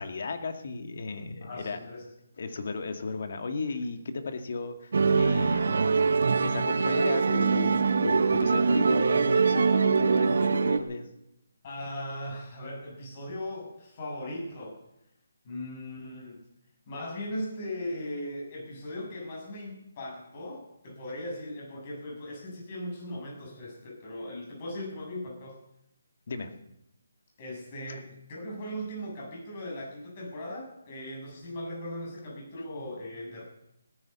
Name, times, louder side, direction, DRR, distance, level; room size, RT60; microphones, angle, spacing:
voice 1, 0.0-1.8 2.4-6.0 6.4-11.1 26.3-26.5, left 4 dB, 55° left, 7 dB, 2.2 m, -35 dB
voice 2, 1.4-2.1 11.6-14.8 15.4-16.4 16.9-25.6 27.4-33.4, left 1 dB, 40° left, -1 dB, 7.9 m, -38 dB
Musical instrument, 4.9-10.8, right 4 dB, 65° right, 1.4 m, -23 dB
17.5 x 10.5 x 7.0 m, 0.82 s
figure-of-eight pair, 150°, 0 cm